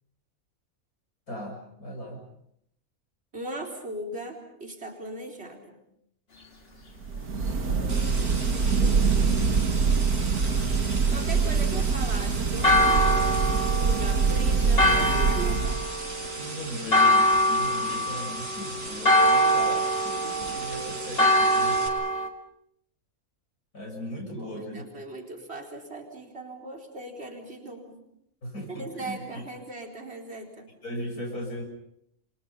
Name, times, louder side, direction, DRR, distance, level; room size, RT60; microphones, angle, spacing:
voice 1, 1.3-2.3 7.6-9.5 16.4-21.9 23.7-24.9 28.4-29.5 30.8-31.6, equal, 70° left, 0 dB, 7.2 m, -38 dB
voice 2, 3.3-5.8 9.9-15.8 24.4-28.0 28.7-30.7, right 2 dB, 45° right, 1 dB, 4.4 m, -39 dB
sound 1, 7.0-16.1, right 5 dB, 80° right, 2.2 m, -24 dB
sound 2, 7.9-21.9, right 2 dB, 60° right, 4.6 m, -38 dB
Church bell, 12.6-22.3, equal, 40° left, 2.3 m, -24 dB
30.0 x 24.0 x 5.6 m, 0.74 s
omnidirectional pair, 1.6 m